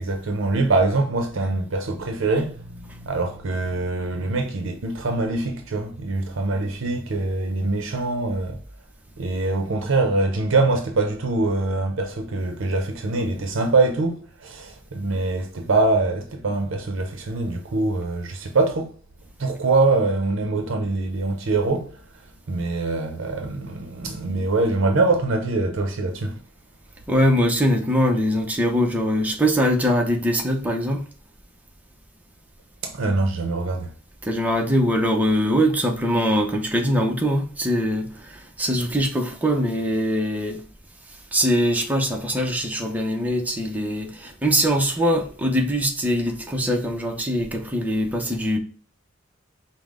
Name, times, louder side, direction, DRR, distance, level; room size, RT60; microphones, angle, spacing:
voice 1, 0.0-8.6 9.2-18.9 19.4-22.0 22.5-26.4 32.8-33.9, right 3 dB, 70° right, 0.6 m, -24 dB
voice 2, 27.1-31.1 34.2-40.6 41.3-48.6, equal, 10° right, 0.7 m, -22 dB
5.3 x 2.1 x 3.6 m
head